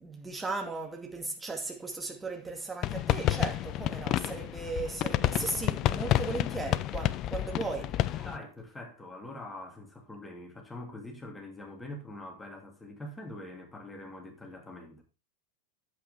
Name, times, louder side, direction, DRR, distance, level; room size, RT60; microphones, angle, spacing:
voice 1, 0.0-8.3, right 3 dB, 10° right, 2.3 m, -37 dB
sound 1, 2.8-8.4, left 14 dB, 35° left, 0.5 m, -30 dB
voice 2, 8.2-15.0, left 1 dB, 10° left, 2.7 m, -44 dB
9.8 x 8.1 x 3.5 m
figure-of-eight pair, 90°, 0 cm